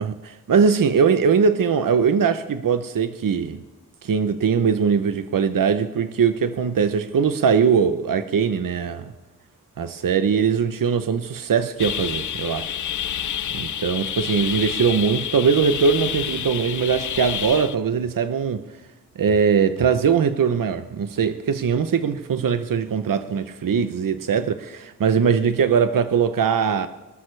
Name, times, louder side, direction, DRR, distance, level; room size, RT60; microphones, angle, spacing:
voice 1, 0.0-3.6 4.0-9.1 9.8-12.8 13.5-18.6 19.2-26.9, right 6 dB, 75° right, 0.7 m, -21 dB
sound 1, 11.8-17.7, left 10 dB, 65° left, 0.5 m, -29 dB
24.5 x 13.0 x 3.3 m
wide cardioid pair, 115°, 33 cm